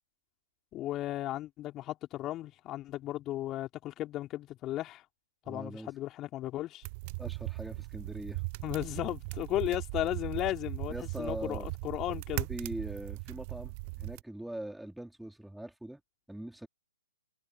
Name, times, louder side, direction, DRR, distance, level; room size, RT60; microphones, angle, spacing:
voice 1, 0.7-5.0 5.5-6.8 8.6-12.5, left 14 dB, 20° left, 3.8 m, -35 dB
voice 2, 5.5-5.9 7.2-8.4 10.9-11.7 12.5-16.0 16.3-16.7, right 1 dB, ahead, 3.9 m, -42 dB
sound 1, 6.8-14.2, right 28 dB, 35° right, 0.8 m, -39 dB
figure-of-eight pair, 120°, 0 cm